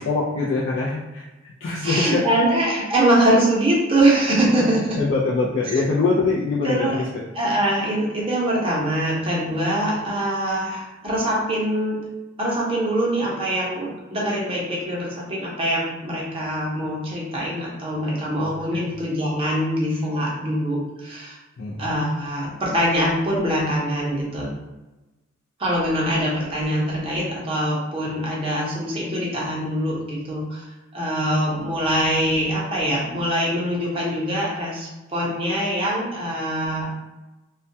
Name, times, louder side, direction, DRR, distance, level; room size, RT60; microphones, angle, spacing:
voice 1, 0.1-1.2 1.6-2.3 5.0-7.2 18.4-18.9 21.6-21.9, left 3 dB, 65° left, -6 dB, 0.4 m, -23 dB
voice 2, 1.8-5.0 5.6-5.8 6.6-7.0 7.3-12.0 12.4-21.4 21.8-24.5 25.6-30.7 30.9-37.1, right 1 dB, 25° right, -4 dB, 0.6 m, -23 dB
2.2 x 2.2 x 2.6 m, 1.1 s
head